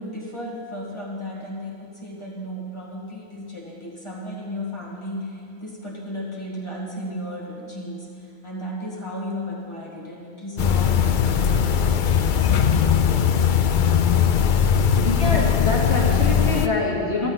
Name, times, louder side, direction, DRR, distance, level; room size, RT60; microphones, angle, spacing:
voice 1, 0.0-13.5, equal, 25° left, -4 dB, 1.9 m, -34 dB
sound 1, 10.6-16.7, left 8 dB, 55° left, 0.6 m, -19 dB
voice 2, 15.0-17.3, left 2 dB, 80° left, -5 dB, 2.7 m, -25 dB
13.5 x 12.5 x 4.0 m, 2.5 s
omnidirectional pair, 1.1 m